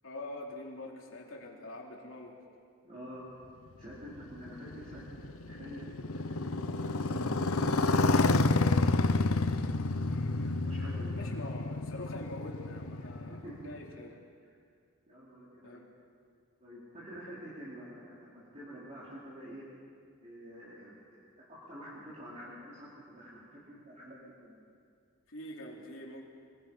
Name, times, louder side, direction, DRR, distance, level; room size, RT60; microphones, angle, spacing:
voice 1, 0.0-2.4 10.1-10.5 11.1-13.4 13.6-14.2 15.6-15.9 25.3-26.2, left 1 dB, 65° left, -1 dB, 3.3 m, -44 dB
voice 2, 2.8-3.2 3.8-5.2 5.4-11.4 13.0-13.1 13.4-13.7 15.1-15.8 16.6-19.6 20.2-24.6, equal, 30° right, -9 dB, 4.2 m, -48 dB
Motorcycle, 3.9-13.8, left 3 dB, 80° left, 0.9 m, -29 dB
25.5 x 21.5 x 5.7 m, 2.3 s
head